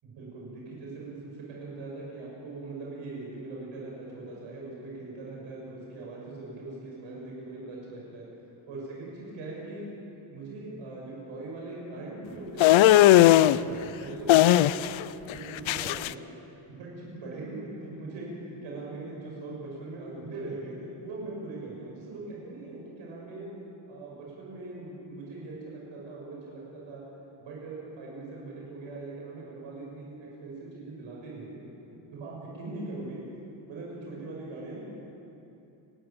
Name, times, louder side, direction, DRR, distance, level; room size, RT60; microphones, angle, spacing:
voice 1, 0.0-8.3 8.7-9.8 10.3-14.9 15.3-16.2 16.7-23.5 23.9-27.0 27.4-31.6 32.1-33.2 33.7-34.8, right 2 dB, 80° right, -4 dB, 6.4 m, -40 dB
sound 1, 12.6-13.6 14.3-15.0 15.3-16.1, left 14 dB, 85° left, 0.6 m, -18 dB
29.5 x 13.0 x 8.9 m, 2.8 s
wide cardioid pair, 180°, 45 cm